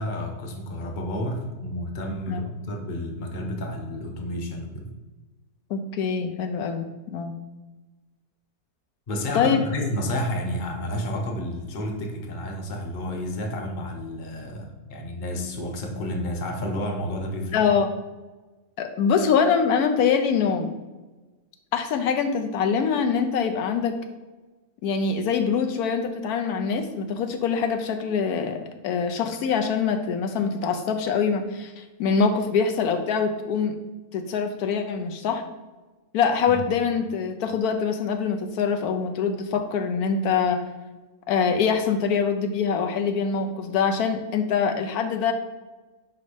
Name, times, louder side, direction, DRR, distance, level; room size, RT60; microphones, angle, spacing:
voice 1, 0.0-4.8 9.1-17.6 36.5-36.6, left 1 dB, 40° left, 2 dB, 0.9 m, -30 dB
voice 2, 5.7-6.9 7.1-7.3 9.3-9.6 17.5-17.9 18.8-20.7 21.7-24.0 24.8-33.8 34.1-35.4 36.1-40.6 41.3-45.3, left 6 dB, 80° left, 6 dB, 1.1 m, -24 dB
5.1 x 4.3 x 4.9 m, 1.2 s
omnidirectional pair, 1.6 m